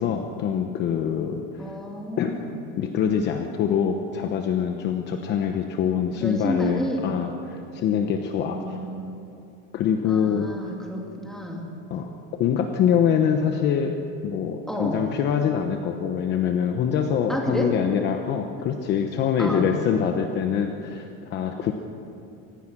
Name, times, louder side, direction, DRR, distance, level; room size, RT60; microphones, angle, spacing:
voice 1, 0.0-1.8 2.2-2.3 2.8-8.8 9.7-10.5 11.9-21.7, left 8 dB, 35° left, 5 dB, 1.0 m, -24 dB
voice 2, 1.6-2.6 6.2-7.1 8.4-9.2 10.0-11.7 14.7-15.1 17.3-17.7 19.4-19.7, equal, ahead, -1 dB, 2.5 m, -30 dB
25.5 x 19.0 x 6.1 m, 2.8 s
cardioid pair, 175°, 29 cm